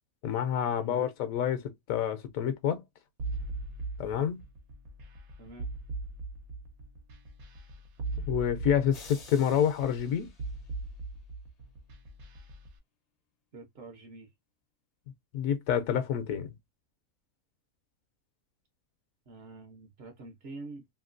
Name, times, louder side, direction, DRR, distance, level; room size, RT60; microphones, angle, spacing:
voice 1, 0.2-2.8 4.0-4.4 8.3-10.3 15.3-16.5, left 9 dB, 70° left, 1.0 m, -28 dB
sound 1, 3.2-12.7, right 3 dB, 75° right, 1.3 m, -39 dB
voice 2, 5.4-5.7 13.5-14.3 19.3-20.9, right 2 dB, 55° right, 0.9 m, -46 dB
sound 2, 8.9-11.2, left 4 dB, 45° left, 0.5 m, -53 dB
2.9 x 2.7 x 2.5 m
omnidirectional pair, 1.5 m